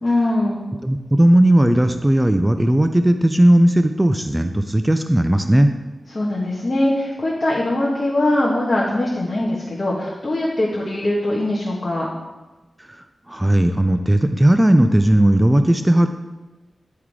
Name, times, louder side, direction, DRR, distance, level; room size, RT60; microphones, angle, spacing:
voice 1, 0.0-0.6 6.1-12.1, left 1 dB, 35° left, -5 dB, 1.3 m, -21 dB
voice 2, 0.8-5.7 12.9-16.1, right 1 dB, 10° right, 7 dB, 0.4 m, -16 dB
10.0 x 3.6 x 4.7 m, 1.1 s
wide cardioid pair, 90°, 0 cm